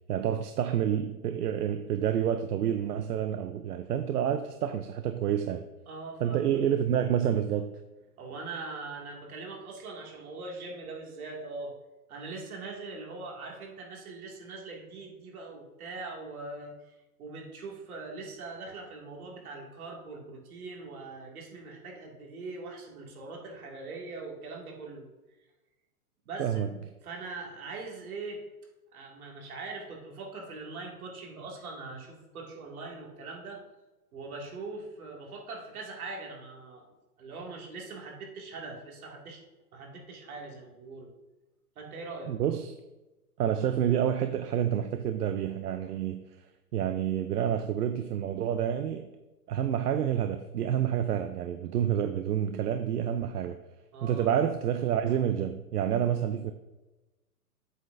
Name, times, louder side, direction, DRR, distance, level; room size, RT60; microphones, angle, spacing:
voice 1, 0.1-5.6 6.2-7.8 26.4-26.7 42.3-42.8 43.4-46.2 46.7-49.1 49.5-53.6 54.0-56.5, right 9 dB, 85° right, 0.6 m, -28 dB
voice 2, 5.9-6.6 8.2-11.7 12.1-16.9 17.2-25.1 26.3-26.5 27.0-28.4 28.9-33.6 34.1-36.8 37.2-39.4 39.7-41.1 41.8-42.3 53.9-54.3, right 3 dB, 70° right, 2.4 m, -41 dB
8.0 x 7.7 x 2.6 m
hypercardioid pair, 155°, 45 cm